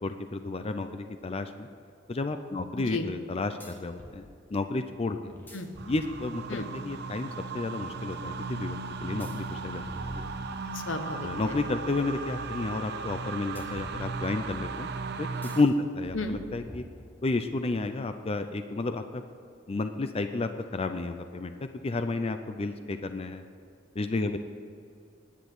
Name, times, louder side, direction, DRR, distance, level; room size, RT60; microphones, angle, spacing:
voice 1, 0.0-1.7 2.1-5.3 5.9-9.8 10.1-10.3 11.1-14.9 15.2-15.3 15.6-16.8 17.2-19.2 19.7-21.5 21.8-23.4 23.9-24.4, left 3 dB, 30° left, 8 dB, 0.5 m, -31 dB
voice 2, 2.8-3.1 5.5-5.7 6.5-6.7 10.7-11.6 16.1-16.4, left 2 dB, 80° left, 7 dB, 1.1 m, -34 dB
sound 1, 3.6-4.2 5.3-6.6 9.2-10.9 13.6-14.6 15.4-15.7 16.1-17.4, equal, 10° left, 1.6 m, -46 dB
sound 2, 5.8-15.6, right 4 dB, 60° right, 0.7 m, -37 dB
10.5 x 9.0 x 8.0 m, 2.4 s
head